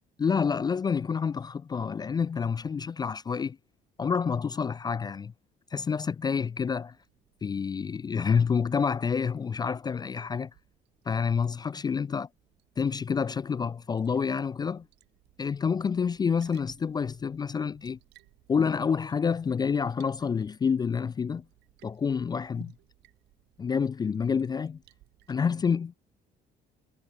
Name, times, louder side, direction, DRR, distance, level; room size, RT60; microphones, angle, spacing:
voice 1, 0.2-3.6 4.0-5.3 5.7-7.0 7.4-10.5 11.1-12.3 12.8-14.8 15.4-18.0 18.5-21.4 21.8-22.7 23.6-24.8 25.3-25.9, left 6 dB, 25° left, 0.4 m, -28 dB
Liquid, 6.9-25.3, right 19 dB, 90° right, 3.6 m, -62 dB
cardioid pair, 110°, 17 cm